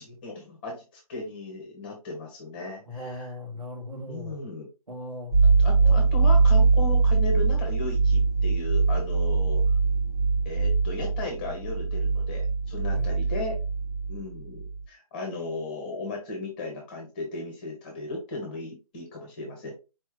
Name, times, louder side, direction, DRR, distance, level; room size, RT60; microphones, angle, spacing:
voice 1, 0.0-3.3 4.1-4.7 5.6-9.7 10.4-13.6 14.1-19.7, left 2 dB, 15° left, 1.0 m, -36 dB
voice 2, 2.9-4.5 4.9-5.3 5.8-6.1 12.9-13.1, left 1 dB, 85° right, 1.9 m, -38 dB
sound 1, 5.3-14.3 14.6-14.8, right 4 dB, 25° right, 1.1 m, -22 dB
4.4 x 3.2 x 3.4 m
hypercardioid pair, 165°, 19 cm